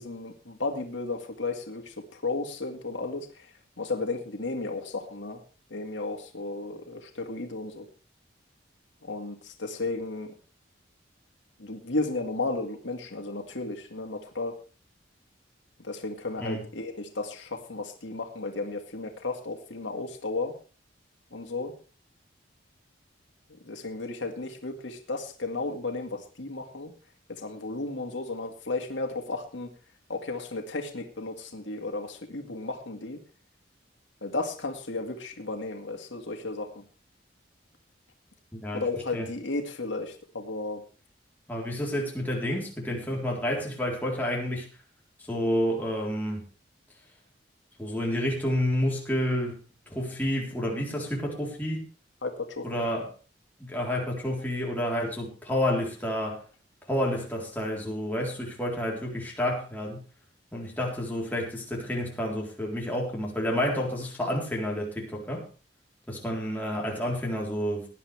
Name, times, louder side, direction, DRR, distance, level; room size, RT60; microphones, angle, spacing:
voice 1, 0.0-3.4 3.8-5.4 5.7-7.9 9.0-10.3 11.6-14.6 15.8-20.5 21.3-21.7 23.6-26.9 27.4-29.7 30.1-33.2 34.2-36.8 38.7-40.8 52.2-52.8, left 3 dB, 80° left, 4 dB, 2.1 m, -34 dB
voice 2, 38.5-38.8 39.1-39.3 41.5-44.7 45.2-46.4 47.8-49.6 49.9-51.8 52.6-53.1 53.6-56.4 56.9-60.0 60.5-65.4 66.1-67.9, equal, 10° left, -3 dB, 3.9 m, -29 dB
18.5 x 10.5 x 3.5 m, 0.35 s
head